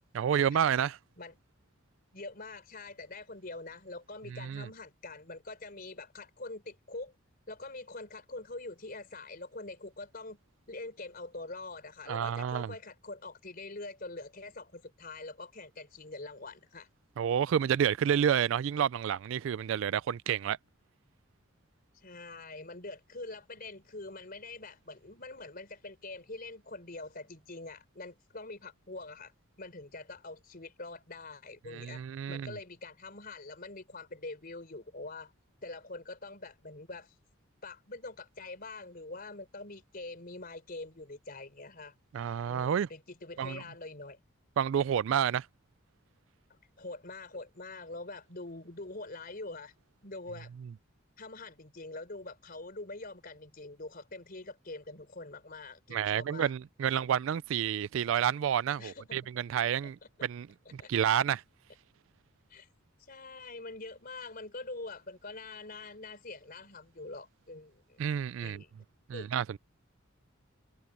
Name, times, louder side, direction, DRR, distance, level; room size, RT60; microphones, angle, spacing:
voice 1, 0.1-1.0 4.4-4.7 12.1-12.7 17.2-20.6 31.7-32.5 42.1-42.9 43.4-43.6 44.6-45.5 55.9-60.0 60.2-60.5 60.7-61.4 68.0-68.6 69.1-69.6, right 8 dB, 65° right, 0.3 m, -29 dB
voice 2, 2.1-7.1 7.5-10.4 10.7-16.9 21.9-29.3 29.6-32.0 32.3-35.3 35.6-37.1 37.6-41.9 42.5-44.2 46.5-49.7 50.0-50.5 51.2-56.5 58.8-59.2 60.6-60.9 62.5-62.7 63.1-68.0 68.4-68.7 69.1-69.3, left 2 dB, 45° left, 4.4 m, -44 dB
head